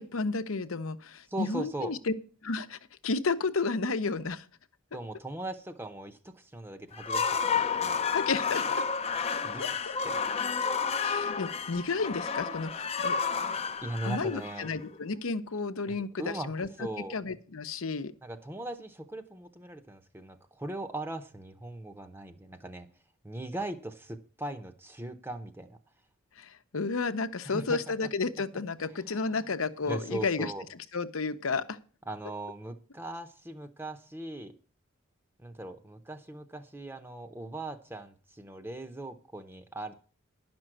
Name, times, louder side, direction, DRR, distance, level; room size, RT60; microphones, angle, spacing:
voice 1, 0.0-2.1 2.4-4.5 8.1-8.8 9.6-9.7 11.0-13.2 14.0-18.1 26.4-31.8, left 4 dB, 80° left, 11 dB, 0.8 m, -32 dB
voice 2, 1.3-1.9 4.9-7.9 9.4-9.8 10.0-10.2 13.8-14.7 15.9-16.5 16.8-17.1 18.2-22.9 23.2-25.8 27.5-28.1 28.8-29.4 29.8-30.6 32.1-34.5 35.4-39.9, right 1 dB, 10° right, 8 dB, 0.7 m, -39 dB
sound 1, 6.9-15.0, left 6 dB, 30° left, 0.5 m, -31 dB
11.0 x 6.1 x 7.7 m, 0.40 s
head